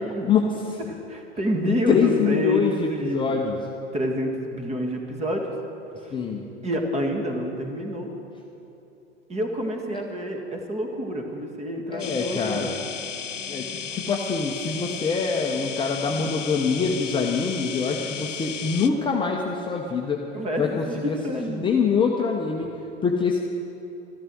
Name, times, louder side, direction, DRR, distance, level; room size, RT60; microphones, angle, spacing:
voice 1, 0.3-0.8 1.9-3.6 6.1-6.5 9.9-10.0 11.9-12.8 13.5-20.3 20.6-21.2 21.5-23.4, left 5 dB, 15° left, 0 dB, 0.8 m, -25 dB
voice 2, 0.9-2.6 2.9-3.4 3.9-5.5 6.0-6.1 6.6-8.1 9.3-12.7 20.3-20.9 21.2-21.7, equal, 20° right, 3 dB, 1.9 m, -28 dB
sound 1, 12.0-18.9, left 7 dB, 85° left, 0.9 m, -34 dB
13.5 x 12.5 x 6.3 m, 2.9 s
hypercardioid pair, 105°, 36 cm